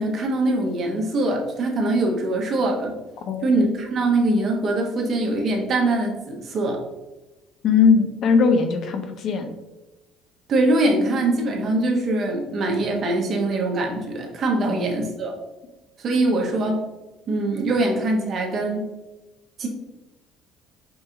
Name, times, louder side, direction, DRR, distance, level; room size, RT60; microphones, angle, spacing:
voice 1, 0.0-2.9 3.4-6.8 10.5-15.3 16.0-16.8 17.3-18.8 19.6-19.7, right 2 dB, 50° right, 1 dB, 1.1 m, -23 dB
voice 2, 7.6-9.5 14.7-14.9, left 5 dB, 55° left, 6 dB, 0.6 m, -19 dB
5.4 x 2.4 x 2.8 m, 1.1 s
supercardioid pair, 85°, 0 cm